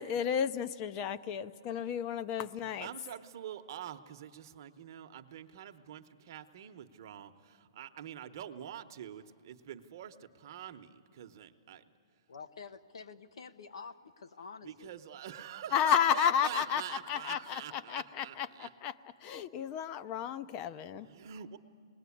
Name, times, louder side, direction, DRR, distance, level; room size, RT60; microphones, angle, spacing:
voice 1, 0.0-2.9 15.7-18.9 19.2-21.1, left 9 dB, 25° left, 13 dB, 0.6 m, -32 dB
voice 2, 2.6-11.8 14.6-18.7 20.9-21.6, right 10 dB, 45° right, 8 dB, 1.0 m, -45 dB
voice 3, 12.3-14.9, left 5 dB, 85° left, 10 dB, 1.1 m, -48 dB
27.5 x 20.0 x 8.5 m, 2.3 s
hypercardioid pair, 160°, 3 cm